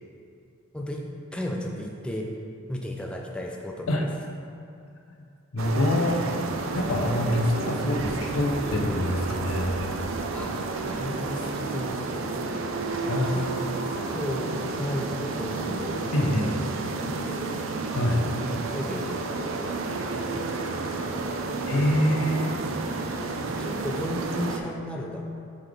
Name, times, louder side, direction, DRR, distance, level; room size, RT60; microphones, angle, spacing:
voice 1, 0.7-1.0 1.3-2.3 2.7-4.1 10.3-12.7 13.3-13.4 14.1-16.1 17.3-17.6 18.1-18.3 18.7-21.4 23.4-25.2, left 1 dB, 5° left, 0 dB, 0.4 m, -35 dB
voice 2, 5.5-6.2 6.7-9.8 13.1-14.2 16.1-16.6 17.9-18.2 21.7-22.8, left 1 dB, 90° left, 2 dB, 0.7 m, -26 dB
sound 1, 5.6-24.6, right 3 dB, 75° right, 0.5 m, -31 dB
8.0 x 3.9 x 3.4 m, 2.4 s
head